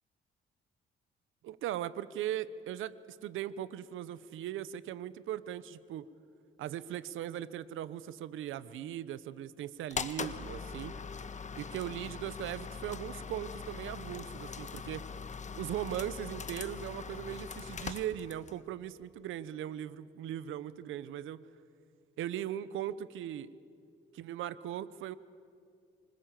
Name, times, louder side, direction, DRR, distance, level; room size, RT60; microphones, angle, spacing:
voice 1, 1.4-6.1 6.6-11.0 11.5-15.1 15.5-21.5 22.2-23.5 24.1-25.2, right 11 dB, 85° right, 16 dB, 1.0 m, -39 dB
sound 1, 9.9-18.6, left 5 dB, 35° left, 1.4 m, -41 dB
26.5 x 25.0 x 7.6 m, 2.3 s
cardioid pair, 90°, 20 cm